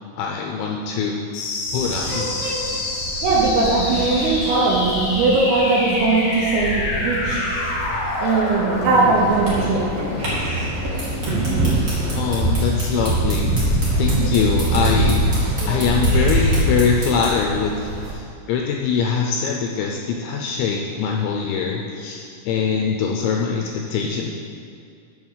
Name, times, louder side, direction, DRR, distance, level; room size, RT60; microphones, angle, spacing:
voice 1, 0.2-1.2 1.7-2.2 12.2-24.3, left 6 dB, 80° left, 0 dB, 2.7 m, -23 dB
sound 1, 1.3-12.4, left 2 dB, 65° left, 2.1 m, -27 dB
sound 2, 1.7-18.1, right 1 dB, 45° right, 3.2 m, -24 dB
voice 2, 3.2-7.4 8.2-10.1 11.2-11.3 14.2-14.4 15.6-15.8, right 3 dB, 85° right, -5 dB, 3.7 m, -20 dB
sound 3, 10.9-17.5, right 1 dB, 30° right, 1.5 m, -34 dB
8.0 x 6.3 x 7.2 m, 2.4 s
omnidirectional pair, 5.8 m